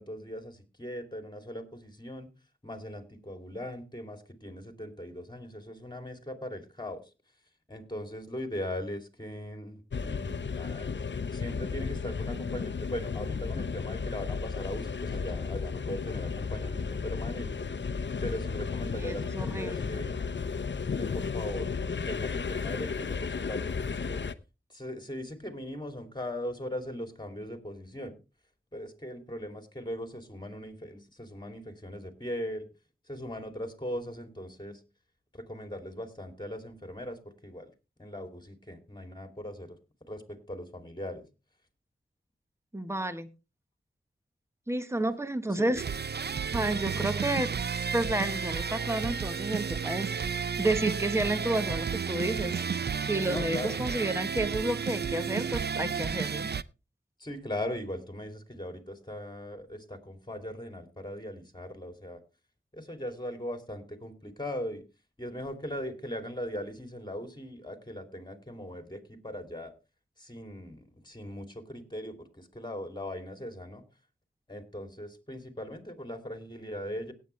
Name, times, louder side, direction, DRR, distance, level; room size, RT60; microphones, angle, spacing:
voice 1, 0.0-2.3 2.6-7.0 7.7-10.9 11.3-17.7 18.2-20.2 20.9-21.7 22.1-24.2 24.7-28.1 28.7-32.7 33.1-34.8 35.3-37.7 38.0-39.8 40.1-41.2 45.5-45.7 53.3-53.8 57.2-62.2 62.7-64.8 65.2-69.7 70.2-73.8 74.5-77.1, left 1 dB, 20° left, 7 dB, 2.7 m, -39 dB
sound 1, 9.9-24.3, left 5 dB, 60° left, 0.7 m, -33 dB
voice 2, 18.9-19.9 42.7-43.3 44.7-45.8 46.5-47.5 47.9-52.6 53.0-56.5, right 1 dB, 15° right, 11 dB, 1.1 m, -31 dB
sound 2, 45.8-56.6, right 6 dB, 55° right, 0.5 m, -32 dB
17.5 x 8.7 x 3.2 m, 0.29 s
wide cardioid pair, 50°, 21 cm